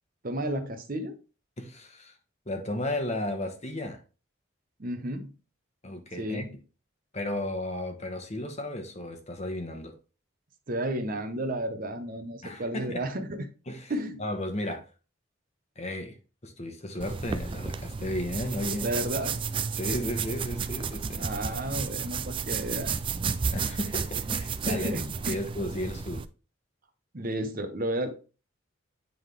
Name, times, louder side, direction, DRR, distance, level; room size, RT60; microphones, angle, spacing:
voice 1, 0.2-1.2 4.8-5.3 6.2-6.6 10.7-13.4 13.9-14.2 18.8-19.4 21.2-22.9 24.7-25.4 27.1-28.2, right 1 dB, 45° right, 0.9 m, -32 dB
voice 2, 1.6-2.1 2.5-4.0 5.8-6.5 7.1-9.9 12.4-13.0 13.7-13.9 14.2-14.9 15.8-16.2 16.4-18.9 19.7-21.3 23.5-24.9 25.3-26.3, left 1 dB, 35° left, 1.1 m, -34 dB
sound 1, 17.0-26.3, right 5 dB, 25° right, 0.3 m, -32 dB
9.2 x 3.8 x 3.3 m
head